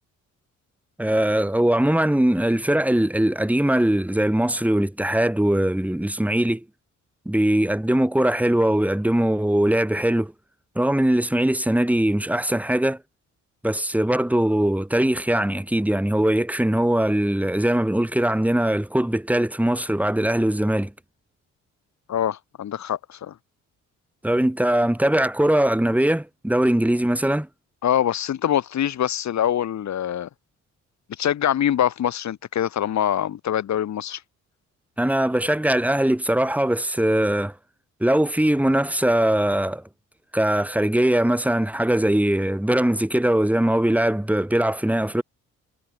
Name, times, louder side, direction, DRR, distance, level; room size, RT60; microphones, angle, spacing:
voice 1, 1.0-6.6 7.3-10.3 10.8-13.0 13.6-20.9 24.2-27.5 35.0-37.5 38.0-39.8 40.3-45.2, right 1 dB, 5° right, 5.2 m, -21 dB
voice 2, 22.1-23.3 27.8-30.3 31.2-34.2, left 10 dB, 65° left, 4.4 m, -24 dB
cardioid pair, 90°, 30 cm